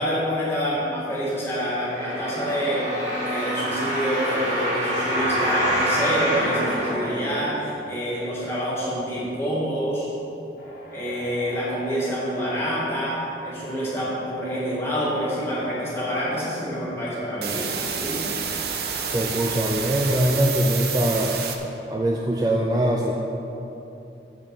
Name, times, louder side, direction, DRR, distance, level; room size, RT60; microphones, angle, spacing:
voice 1, 0.0-2.8 3.2-10.1 10.9-13.2 13.4-18.3, equal, 15° left, -8 dB, 2.1 m, -27 dB
sound 1, 1.8-7.8 8.4-8.5, equal, 40° right, 2.1 m, -26 dB
sound 2, 10.6-19.6, equal, 55° left, 1.6 m, -45 dB
sound 3, 17.4-21.6, right 7 dB, 60° right, 0.7 m, -29 dB
voice 2, 19.0-21.4 21.9-23.1, right 1 dB, 20° right, -1 dB, 0.4 m, -22 dB
6.6 x 5.7 x 6.9 m, 3.0 s
head